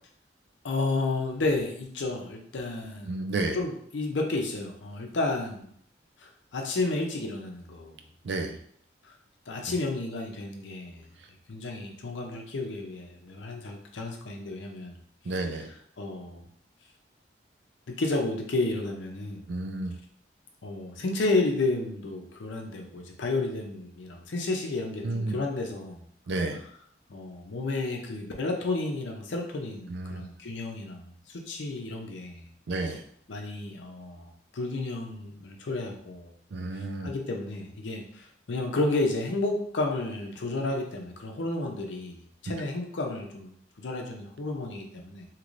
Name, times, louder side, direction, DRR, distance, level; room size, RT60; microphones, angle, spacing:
voice 1, 0.6-3.2 3.5-5.7 6.2-8.0 9.0-9.1 9.5-11.0 11.5-15.0 15.3-15.6 16.0-16.4 17.9-19.4 20.6-26.0 27.1-32.4 32.8-33.0 33.3-36.3 37.0-45.3, left 2 dB, 85° left, 2 dB, 0.6 m, -32 dB
voice 2, 3.1-3.6 8.2-8.6 15.3-15.7 19.5-20.0 25.0-25.3 26.3-26.6 29.9-30.2 32.7-33.0 36.5-37.1, right 2 dB, 70° right, 5 dB, 0.4 m, -31 dB
3.1 x 2.9 x 2.5 m, 0.65 s
head